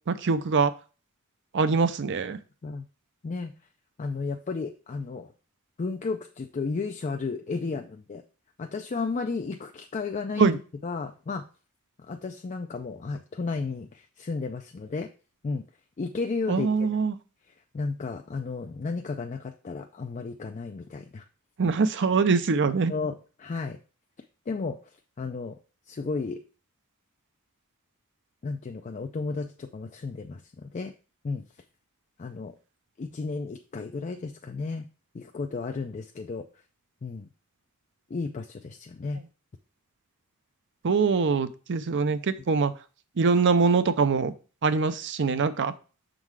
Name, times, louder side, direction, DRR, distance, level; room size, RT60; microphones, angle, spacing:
voice 1, 0.1-0.7 1.5-2.4 10.4-10.6 16.5-17.1 21.6-22.9 40.8-42.7 43.2-44.3 44.6-45.7, right 4 dB, 55° right, 12 dB, 0.5 m, -23 dB
voice 2, 4.0-5.3 5.8-8.2 8.6-11.4 12.0-15.1 15.4-15.6 16.0-16.7 17.5-21.2 22.9-23.8 24.5-25.6 25.9-26.4 28.4-30.9 31.2-31.4 32.2-32.5 33.0-34.9 35.1-36.4 37.0-37.3 38.1-39.2 45.3-45.4, left 4 dB, 35° left, 5 dB, 0.4 m, -33 dB
6.3 x 3.8 x 4.6 m, 0.36 s
head